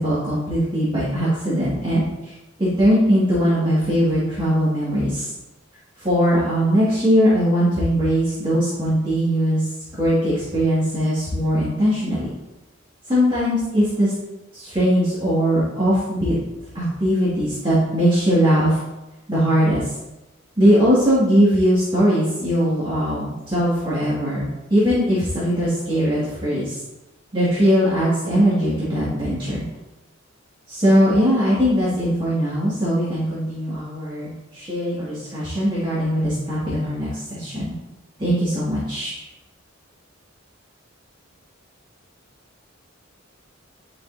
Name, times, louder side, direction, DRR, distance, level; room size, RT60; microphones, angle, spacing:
voice 1, 0.0-5.3 6.0-9.7 10.0-12.3 13.1-14.1 14.5-16.3 16.7-18.8 19.3-19.9 20.6-26.8 27.3-29.6 30.7-37.7 38.2-39.1, equal, 25° right, -10 dB, 2.0 m, -20 dB
9.5 x 5.4 x 2.7 m, 1.0 s
head